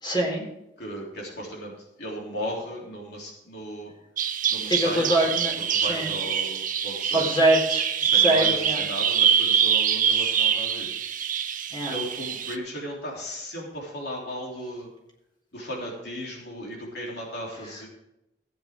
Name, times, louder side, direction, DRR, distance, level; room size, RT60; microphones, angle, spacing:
voice 1, 0.0-0.4 4.7-5.5 5.9-6.1 7.1-8.8 11.7-11.9, right 1 dB, 25° left, -1 dB, 4.1 m, -23 dB
voice 2, 0.8-3.9 4.5-5.1 5.7-7.5 8.0-10.9 11.9-14.9 15.5-17.9, equal, 65° left, -2 dB, 3.3 m, -36 dB
Bird vocalization bird call bird song, 4.2-12.6, right 8 dB, 50° right, 0.8 m, -24 dB
15.5 x 9.0 x 3.7 m, 0.88 s
head